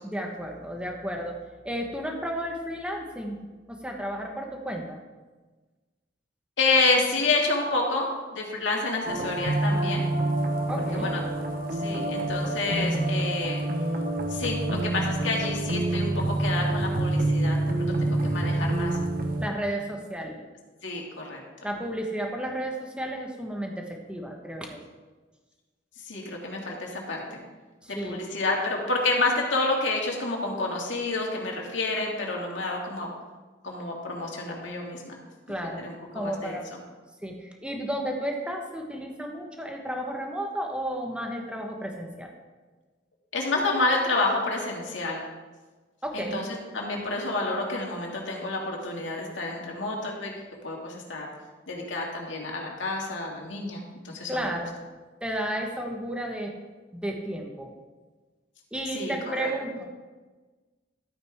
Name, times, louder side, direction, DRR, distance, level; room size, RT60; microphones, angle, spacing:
voice 1, 0.0-1.4 1.6-3.4 3.7-5.0 10.7-11.1 19.4-20.4 21.6-24.8 27.8-28.2 35.5-35.8 36.1-36.7 37.2-42.3 46.0-46.4 54.3-54.8 55.2-56.5 56.9-57.7 58.7-59.8, right 1 dB, 5° right, 1 dB, 1.3 m, -32 dB
voice 2, 6.6-10.0 10.9-11.2 11.8-13.6 14.3-19.0 20.8-21.4 26.0-27.4 27.9-33.1 33.6-35.2 35.8-36.8 43.3-45.2 46.1-46.5 46.7-50.3 50.6-51.3 51.7-54.5 58.9-59.5, left 3 dB, 90° left, -1 dB, 2.3 m, -29 dB
sound 1, 9.0-19.5, right 2 dB, 50° right, 1.2 m, -27 dB
12.5 x 8.9 x 3.6 m, 1.3 s
head